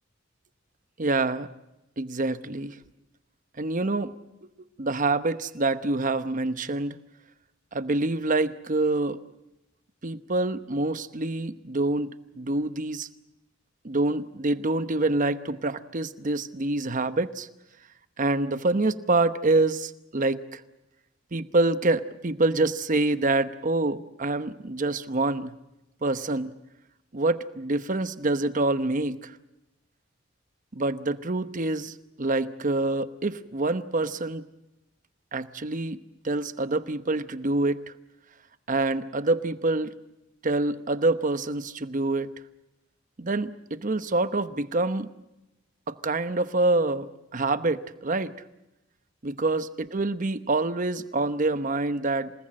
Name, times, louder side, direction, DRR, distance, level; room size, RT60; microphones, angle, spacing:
voice 1, 1.0-1.5 2.0-2.8 3.6-4.2 4.8-7.0 7.7-9.2 10.0-13.1 13.8-17.5 18.2-20.6 21.3-25.5 26.0-26.5 27.1-29.4 30.7-34.4 35.3-36.0 36.2-37.9 38.7-39.9 40.4-42.3 43.2-45.1 45.9-48.3 49.2-52.3, right 2 dB, 40° right, 12 dB, 1.0 m, -26 dB
27.5 x 19.0 x 7.6 m, 0.93 s
head